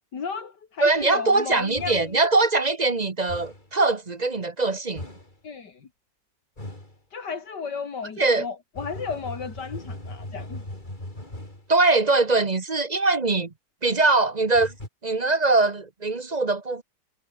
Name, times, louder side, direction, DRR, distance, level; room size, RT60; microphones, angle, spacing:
voice 1, 0.1-2.2 5.4-5.9 7.1-10.6, left 5 dB, 75° left, 2.8 m, -34 dB
voice 2, 0.8-5.1 8.2-8.5 11.7-13.5 13.8-14.7 15.0-16.8, right 3 dB, 30° right, 1.0 m, -22 dB
sound 1, 1.7-2.2 3.3-3.7 5.0-5.4 6.6-7.0 8.7-11.7 14.5-14.9, left 1 dB, 25° left, 5.7 m, -38 dB
omnidirectional pair, 1.8 m